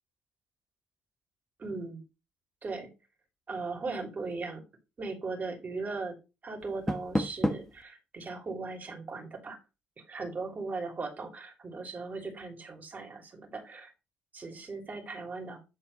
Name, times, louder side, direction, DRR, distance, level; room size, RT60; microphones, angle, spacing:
voice 1, 1.6-2.0 2.6-2.9 3.5-4.6 5.0-6.1 6.4-9.6 10.1-13.9 14.3-15.6, right 3 dB, 40° right, 2 dB, 3.1 m, -38 dB
Door, 6.6-7.8, left 1 dB, 10° left, 1.1 m, -31 dB
9.4 x 4.0 x 4.1 m, 0.27 s
hypercardioid pair, 55°, 4 cm